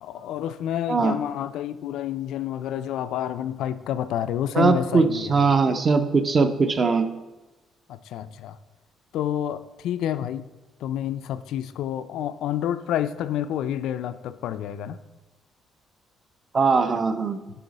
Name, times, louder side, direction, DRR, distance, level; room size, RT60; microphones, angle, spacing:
voice 1, 0.0-5.4 7.9-8.6 9.1-10.4 10.8-15.0, left 11 dB, 75° left, 13 dB, 0.3 m, -29 dB
voice 2, 4.5-7.1 16.5-17.4, right 4 dB, 25° right, 9 dB, 0.4 m, -20 dB
9.9 x 3.9 x 4.0 m, 1.1 s
cardioid pair, 170°, 0 cm